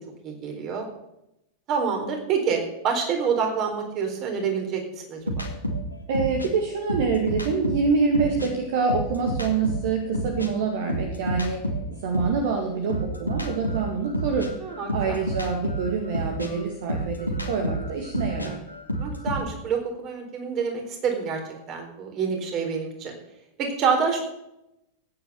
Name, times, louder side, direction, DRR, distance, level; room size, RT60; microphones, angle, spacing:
voice 1, 0.2-0.9 1.7-4.8 5.1-5.2 14.6-15.2 19.0-21.4 21.7-23.1 23.6-24.2, right 6 dB, 35° right, 3 dB, 4.0 m, -27 dB
sound 1, 5.3-8.5 8.8-12.4 12.9-19.4, equal, 85° left, 2.3 m, -29 dB
voice 2, 6.1-11.6 11.9-14.5 14.9-18.6, right 5 dB, 55° right, 3 dB, 1.9 m, -26 dB
14.5 x 9.5 x 6.9 m, 0.87 s
figure-of-eight pair, 90°, 0 cm